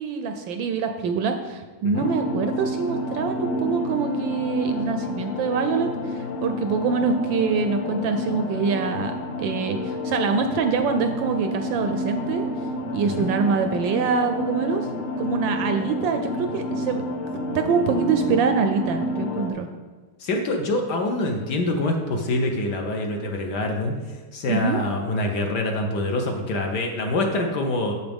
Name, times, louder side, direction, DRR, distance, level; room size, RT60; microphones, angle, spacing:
voice 1, 0.0-12.5 12.9-14.9 15.2-17.0 17.5-19.7 24.5-24.8, right 5 dB, 75° right, 6 dB, 1.1 m, -25 dB
sound 1, 1.9-19.5, left 1 dB, 80° left, 1.6 m, -29 dB
voice 2, 13.0-13.3 20.2-27.9, left 2 dB, 65° left, 2 dB, 1.2 m, -25 dB
8.8 x 6.8 x 3.5 m, 1.3 s
omnidirectional pair, 2.4 m